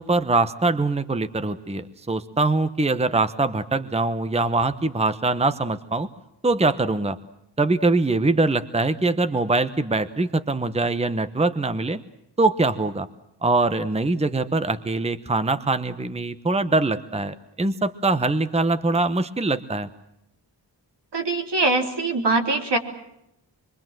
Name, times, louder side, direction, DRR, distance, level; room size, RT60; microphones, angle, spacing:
voice 1, 0.0-6.1 6.4-7.2 7.6-12.0 12.4-13.1 13.4-19.9, right 3 dB, 15° right, 11 dB, 1.0 m, -23 dB
voice 2, 21.1-22.8, right 2 dB, 70° right, 3 dB, 4.1 m, -22 dB
26.0 x 23.0 x 7.7 m, 0.81 s
wide cardioid pair, 125°, 43 cm